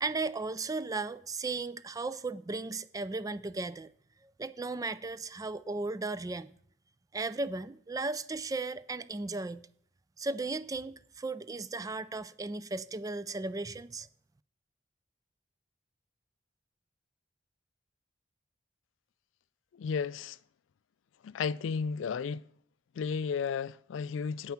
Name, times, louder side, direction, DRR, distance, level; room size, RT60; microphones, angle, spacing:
voice 1, 0.0-3.9 4.2-6.5 7.1-9.7 10.2-14.1, right 3 dB, 20° right, 0.4 m, -36 dB
voice 2, 19.7-20.4 21.2-22.5 23.0-24.5, left 6 dB, 80° left, 0.4 m, -33 dB
9.2 x 8.7 x 5.9 m
head